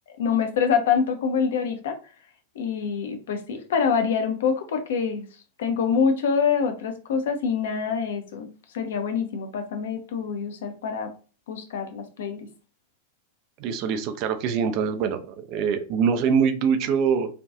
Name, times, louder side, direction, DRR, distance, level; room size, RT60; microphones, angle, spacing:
voice 1, 0.2-2.0 2.6-5.3 5.6-11.1 11.5-12.5, left 6 dB, 60° left, 6 dB, 0.4 m, -25 dB
voice 2, 13.6-17.3, right 6 dB, 40° right, 9 dB, 0.3 m, -24 dB
2.5 x 2.2 x 2.4 m, 0.35 s
figure-of-eight pair, 90°, 0 cm